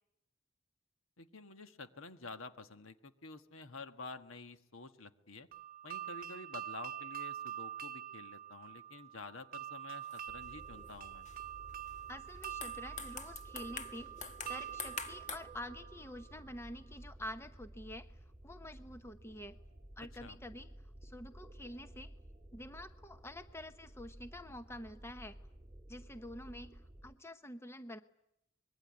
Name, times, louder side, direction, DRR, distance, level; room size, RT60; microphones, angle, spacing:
voice 1, 1.2-5.5 5.8-11.3 20.2-20.4, left 3 dB, 70° left, 8 dB, 1.6 m, -50 dB
sound 1, 5.5-16.3, right 10 dB, 45° right, 1.1 m, -46 dB
sound 2, 10.0-10.4 10.9-11.4 11.9-12.0 12.4-15.4, left 5 dB, 35° left, 1.6 m, -46 dB
sound 3, 10.3-27.1, right 1 dB, 15° right, 2.5 m, -54 dB
voice 2, 12.1-14.1 14.5-18.1 18.4-19.6 20.0-20.7 21.0-22.1 22.5-25.4 25.9-28.0, left 1 dB, 15° left, 9 dB, 1.0 m, -48 dB
25.0 x 22.0 x 9.5 m, 0.81 s
head